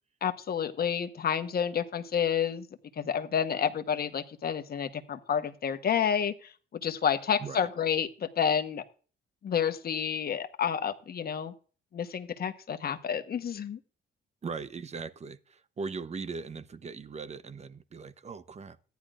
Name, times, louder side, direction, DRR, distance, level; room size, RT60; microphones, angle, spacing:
voice 1, 0.2-2.7 3.0-6.5 6.8-8.8 9.4-11.5 11.9-13.8, left 8 dB, 50° left, 1.1 m, -29 dB
voice 2, 14.4-18.8, right 4 dB, 35° right, 0.8 m, -39 dB
14.5 x 10.5 x 2.5 m
cardioid pair, 90°, 20 cm